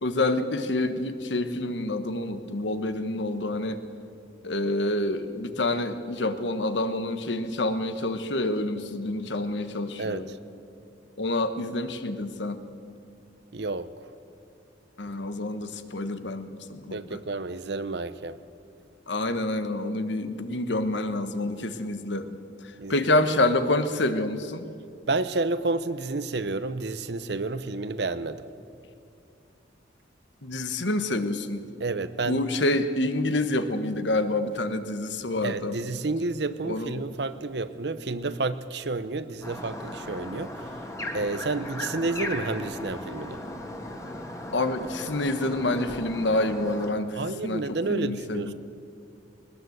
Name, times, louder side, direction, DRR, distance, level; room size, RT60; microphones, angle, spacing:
voice 1, 0.0-3.8 4.4-10.3 11.2-12.6 15.0-17.2 19.1-22.3 22.9-24.6 30.4-31.6 32.3-35.8 36.6-37.0 44.5-48.4, left 2 dB, 75° left, 9 dB, 1.3 m, -27 dB
voice 2, 10.0-10.4 13.5-13.9 16.9-18.4 22.8-22.9 25.1-28.4 31.8-32.4 35.4-40.5 41.1-43.4 47.2-48.5, right 3 dB, 60° right, 13 dB, 0.8 m, -30 dB
sound 1, 39.4-46.9, left 1 dB, 15° left, 2.1 m, -37 dB
20.5 x 20.0 x 8.0 m, 2.5 s
head